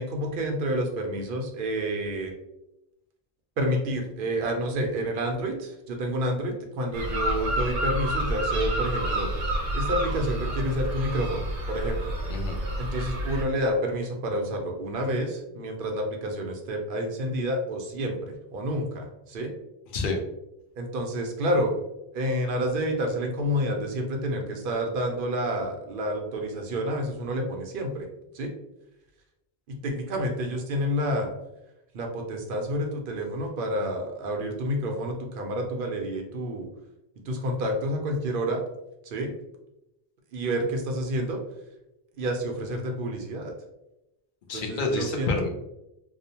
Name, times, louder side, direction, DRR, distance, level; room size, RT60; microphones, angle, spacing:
voice 1, 0.0-2.3 3.6-9.3 9.7-12.1 12.8-19.5 20.8-21.7 22.1-28.1 28.3-28.5 29.7-31.3 31.9-36.7 37.3-38.6 39.0-39.3 40.3-41.4 42.2-43.5 44.5-45.3, equal, 60° right, 3 dB, 0.6 m, -29 dB
sound 1, 6.9-13.4, right 1 dB, 85° right, 0.9 m, -29 dB
voice 2, 12.3-12.6 19.9-20.2 44.5-45.5, left 3 dB, 60° left, 1 dB, 0.6 m, -28 dB
2.7 x 2.0 x 2.7 m, 0.88 s
omnidirectional pair, 1.1 m